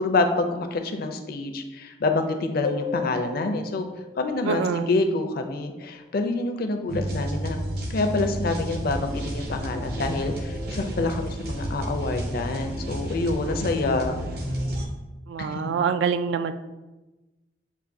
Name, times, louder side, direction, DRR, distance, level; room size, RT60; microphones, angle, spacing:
voice 1, 0.0-3.9 4.2-7.6 7.9-14.2 15.4-15.7, left 3 dB, 55° left, 6 dB, 0.5 m, -27 dB
sound 1, 2.6-5.9, left 5 dB, 90° left, 0.9 m, -36 dB
voice 2, 4.5-4.9 15.3-16.5, right 6 dB, 75° right, 10 dB, 0.3 m, -25 dB
sound 2, 6.9-14.9, right 1 dB, 60° right, 0.7 m, -31 dB
7.0 x 2.5 x 2.6 m, 1.1 s
head